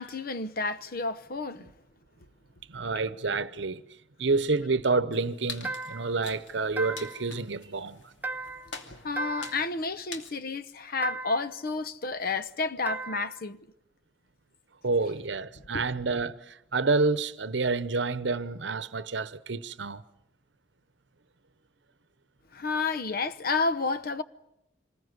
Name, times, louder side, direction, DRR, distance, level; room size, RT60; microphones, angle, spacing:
voice 1, 0.0-1.7 9.0-13.6 15.7-15.8 22.5-24.2, left 3 dB, 50° left, 0.9 m, -30 dB
voice 2, 2.7-3.8 4.2-8.0 14.8-20.0, right 3 dB, 65° right, 0.9 m, -28 dB
sound 1, 5.1-10.4, left 4 dB, 70° left, 2.6 m, -45 dB
sound 2, 5.6-6.2 6.8-7.3 8.2-8.8 9.2-9.7 11.0-11.6 12.9-13.4, right 3 dB, 10° right, 0.8 m, -36 dB
26.5 x 20.5 x 8.0 m
head